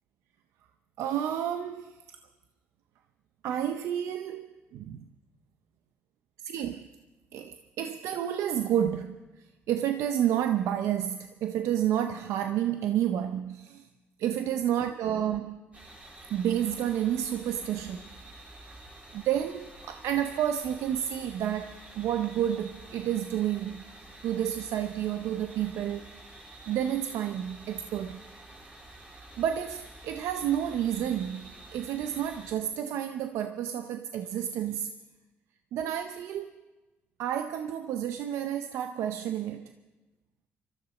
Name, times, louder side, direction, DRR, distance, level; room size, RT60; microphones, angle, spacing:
voice 1, 1.0-2.0 3.4-5.0 6.4-6.9 7.3-9.2 9.7-13.8 14.2-15.6 16.3-18.0 19.1-23.8 24.2-26.1 26.7-28.2 29.4-34.9 35.7-36.6 37.2-39.8, right 10 dB, 80° right, 0.6 m, -30 dB
sound 1, 15.7-32.5, right 2 dB, 30° right, 4.2 m, -49 dB
24.0 x 13.5 x 4.1 m
cardioid pair, 75°, 5 cm